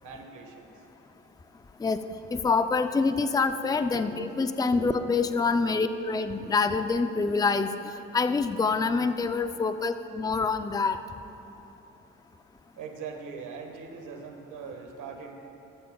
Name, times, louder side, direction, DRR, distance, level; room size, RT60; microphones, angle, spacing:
voice 1, 0.0-0.8 3.9-4.1 4.7-4.9 5.5-5.7 12.8-15.3, right 5 dB, 80° right, 3 dB, 1.6 m, -41 dB
voice 2, 2.3-7.7 8.1-11.0, left 4 dB, 15° left, 9 dB, 0.5 m, -26 dB
20.0 x 13.0 x 2.4 m, 3.0 s
cardioid pair, 90°, 30 cm